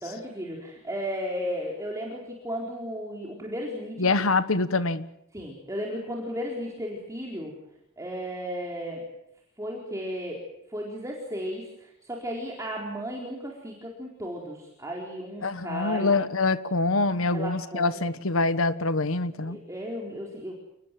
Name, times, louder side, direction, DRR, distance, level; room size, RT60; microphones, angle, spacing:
voice 1, 0.0-4.1 5.3-7.5 8.0-9.0 9.6-16.3 17.3-17.9 19.4-20.5, equal, 15° right, -1 dB, 4.2 m, -35 dB
voice 2, 4.0-5.1 15.4-19.6, left 3 dB, 75° left, 14 dB, 1.2 m, -25 dB
29.5 x 19.5 x 7.7 m, 0.82 s
head